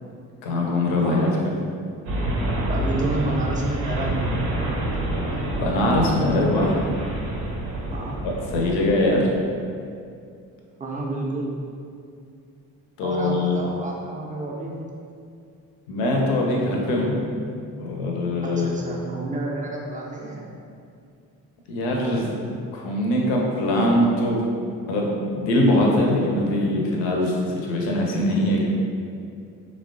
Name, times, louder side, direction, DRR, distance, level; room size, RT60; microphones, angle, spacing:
voice 1, 0.4-1.5 5.6-6.7 8.2-9.3 13.0-13.6 15.9-17.2 17.8-18.8 21.7-22.3 22.7-24.4 24.8-28.8, left 1 dB, 65° left, -1 dB, 0.6 m, -22 dB
sound 1, 2.1-9.0, right 1 dB, 80° right, 0.6 m, -27 dB
voice 2, 2.7-4.5 7.9-8.3 10.8-11.5 13.0-14.8 18.4-20.4, right 2 dB, 20° right, -2 dB, 0.4 m, -30 dB
3.0 x 2.0 x 2.5 m, 2.4 s
hypercardioid pair, 40°, 48 cm